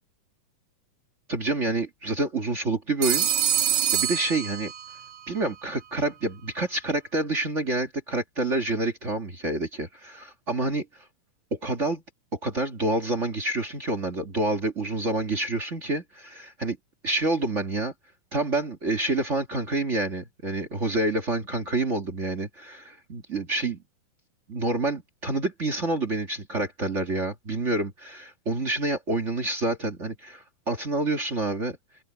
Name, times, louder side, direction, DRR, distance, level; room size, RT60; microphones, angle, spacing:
voice 1, 1.3-3.3 3.9-4.7 5.3-10.8 11.5-12.0 12.3-16.8 17.0-17.9 18.3-23.8 24.5-31.8, right 2 dB, 40° right, 1.0 m, -28 dB
Telephone, 3.0-5.1, right 10 dB, 55° right, 2.6 m, -25 dB
open air
omnidirectional pair, 4.0 m